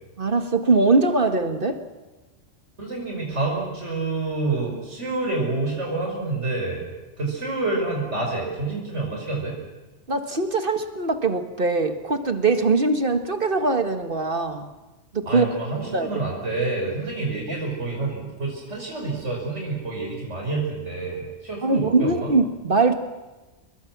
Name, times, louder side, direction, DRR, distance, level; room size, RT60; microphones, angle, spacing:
voice 1, 0.2-1.8 10.1-14.7 15.1-15.5 15.9-16.1 21.6-22.9, right 3 dB, 50° right, 7 dB, 1.9 m, -22 dB
voice 2, 2.8-6.8 7.2-9.6 15.3-22.3, right 3 dB, 80° right, -1 dB, 5.8 m, -28 dB
28.0 x 22.0 x 6.1 m, 1.1 s
omnidirectional pair, 1.2 m